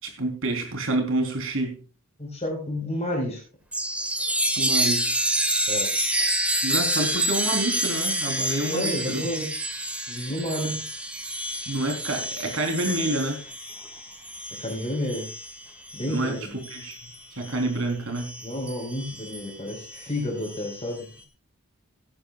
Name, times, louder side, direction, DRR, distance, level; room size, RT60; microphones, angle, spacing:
voice 1, 0.0-1.8 4.6-5.1 6.6-9.3 11.7-13.4 16.1-18.4, right 2 dB, 65° right, 3.9 m, -28 dB
voice 2, 2.2-3.4 5.7-5.9 8.6-9.6 10.1-10.8 14.6-15.3 15.9-16.6 18.4-21.1, left 1 dB, 30° left, 4.7 m, -30 dB
Chime, 3.7-17.7 18.2-21.0, right 1 dB, 5° right, 1.7 m, -29 dB
17.0 x 11.5 x 2.4 m
head